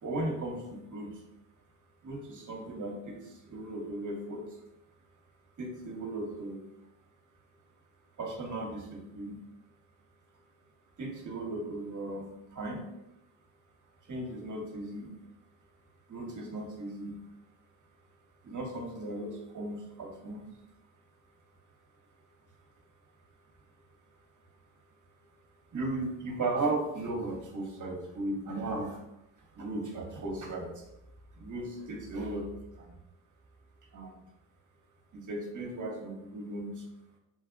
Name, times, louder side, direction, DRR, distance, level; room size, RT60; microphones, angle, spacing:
voice 1, 0.0-1.2 2.0-4.6 5.6-6.6 8.2-9.4 11.0-12.2 12.5-12.9 14.1-15.1 16.1-17.1 18.4-20.5 25.7-29.0 29.5-30.8 31.4-32.5 32.7-32.9 33.9-34.1 35.1-36.8, right 2 dB, 40° right, 1 dB, 1.1 m, -36 dB
3.2 x 3.2 x 2.5 m, 0.88 s
hypercardioid pair, 50°, 48 cm